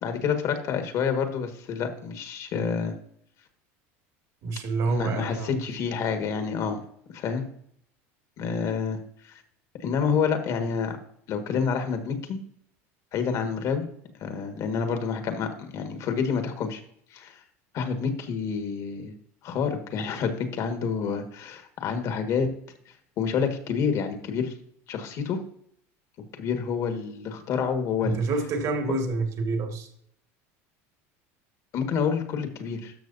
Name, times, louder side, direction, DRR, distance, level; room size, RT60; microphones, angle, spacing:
voice 1, 0.0-2.9 4.9-6.8 7.1-7.4 8.4-9.0 9.2-9.4 9.8-11.0 11.3-12.4 13.1-13.8 14.2-16.8 17.1-17.4 17.7-19.1 19.4-22.5 23.2-24.5 24.9-25.4 26.4-28.2 31.7-32.9, left 6 dB, 50° left, 1.6 m, -28 dB
voice 2, 4.4-5.7 28.0-29.9, right 3 dB, 50° right, 1.8 m, -28 dB
12.5 x 6.3 x 2.7 m
supercardioid pair, 120°, 7 cm